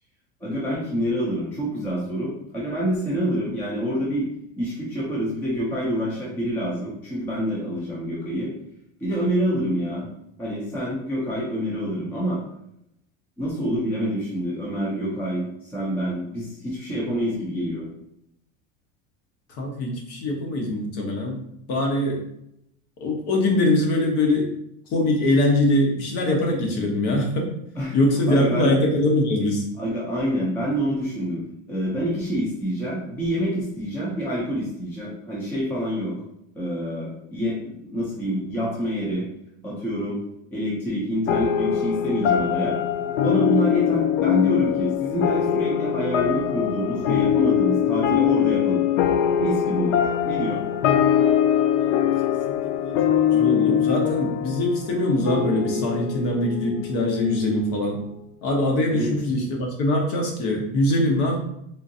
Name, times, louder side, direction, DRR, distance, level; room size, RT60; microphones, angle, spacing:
voice 1, 0.4-4.3 4.6-8.5 9.0-10.1 10.4-12.4 13.4-17.9 27.8-28.0 28.3-28.8 29.8-31.4 31.7-36.2 36.5-39.3 39.6-40.2 40.5-48.8 49.4-50.6 58.9-59.1, equal, 5° left, -5 dB, 0.4 m, -27 dB
voice 2, 19.6-21.4 21.7-22.2 23.0-24.4 24.9-27.5 27.9-29.6 51.7-52.9 53.3-58.0 58.4-61.4, left 1 dB, 55° left, 0 dB, 0.9 m, -23 dB
sound 1, 41.3-58.1, left 9 dB, 85° left, 0.5 m, -22 dB
3.7 x 2.5 x 2.6 m, 0.78 s
cardioid pair, 165°, 39 cm